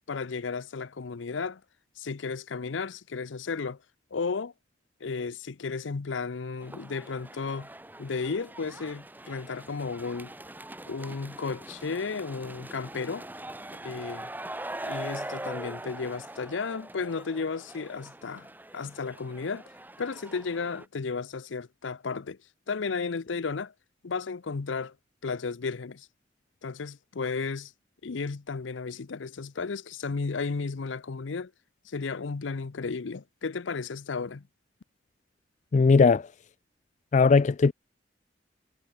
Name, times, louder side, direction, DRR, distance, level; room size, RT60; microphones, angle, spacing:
voice 1, 0.1-1.6 2.0-3.8 4.1-4.5 5.0-7.7 8.0-10.3 10.9-13.3 13.8-14.3 14.8-19.7 20.0-22.4 22.7-23.7 24.0-24.9 25.2-26.1 26.6-27.7 28.0-31.5 31.8-34.4, left 4 dB, 90° left, 0.6 m, -33 dB
sound 1, 6.6-20.9, right 1 dB, 10° right, 2.8 m, -42 dB
voice 2, 35.7-36.3 37.1-37.7, left 4 dB, 40° left, 0.4 m, -19 dB
head